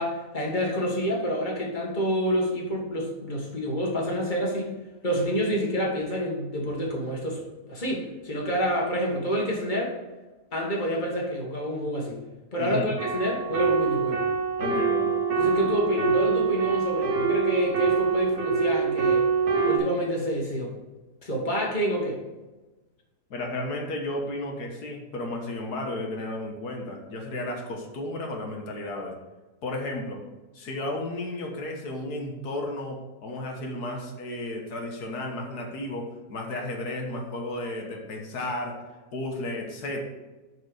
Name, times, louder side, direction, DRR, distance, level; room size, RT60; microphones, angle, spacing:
voice 1, 0.0-4.7 5.0-7.4 7.7-9.9 10.5-12.2 12.5-14.2 15.4-19.3 19.6-20.7 21.2-22.2, equal, 30° left, -2 dB, 2.0 m, -28 dB
voice 2, 12.6-12.9 14.6-15.1 23.3-29.2 29.6-30.2 30.5-38.8 39.1-40.1, left 1 dB, 80° left, 1 dB, 1.8 m, -33 dB
sound 1, 13.0-19.8, right 5 dB, 75° right, 1.7 m, -25 dB
6.5 x 6.5 x 4.9 m, 1.2 s
omnidirectional pair, 1.7 m